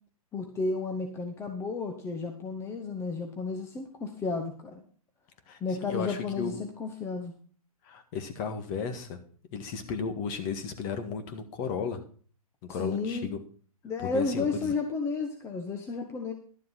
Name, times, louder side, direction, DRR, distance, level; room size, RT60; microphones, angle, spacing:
voice 1, 0.3-4.8 5.6-7.3 12.7-13.3 13.8-16.3, left 4 dB, 15° left, 4 dB, 1.2 m, -32 dB
voice 2, 5.5-6.6 7.8-9.2 9.5-12.0 12.7-13.4 14.1-14.8, left 6 dB, 35° left, 8 dB, 1.8 m, -34 dB
12.0 x 7.6 x 5.8 m, 0.43 s
hypercardioid pair, 135°, 19 cm